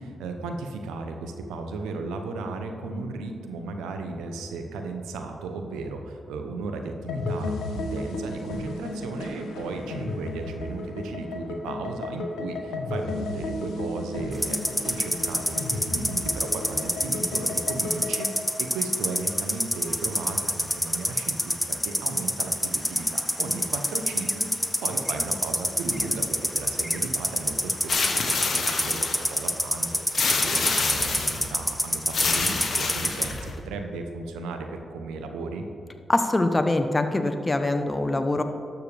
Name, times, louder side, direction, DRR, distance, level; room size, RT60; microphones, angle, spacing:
voice 1, 0.0-35.6, right 3 dB, 85° right, 5 dB, 0.7 m, -35 dB
sound 1, 7.1-18.4, left 2 dB, 80° left, 0.8 m, -33 dB
sound 2, 14.3-33.3, equal, 5° left, 0.9 m, -25 dB
sound 3, 27.9-29.4 30.1-31.5 32.1-33.5, left 4 dB, 60° left, 1.1 m, -27 dB
voice 2, 36.1-38.4, left 2 dB, 30° left, 7 dB, 0.9 m, -23 dB
12.0 x 6.8 x 3.3 m, 2.6 s
hypercardioid pair, 40°, 0 cm